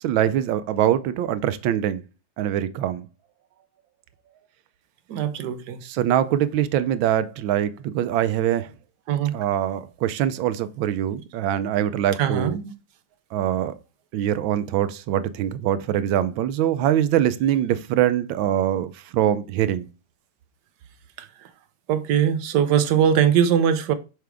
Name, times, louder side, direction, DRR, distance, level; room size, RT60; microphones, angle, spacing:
voice 1, 0.0-2.0 2.4-3.1 5.8-8.7 9.3-12.6 13.3-13.7 14.1-19.9, right 11 dB, 90° right, 1.4 m, -23 dB
voice 2, 5.1-5.8 9.1-9.3 12.2-12.7 21.2-21.3 21.9-23.9, right 9 dB, 65° right, 1.3 m, -21 dB
6.3 x 4.5 x 3.5 m
omnidirectional pair, 2.1 m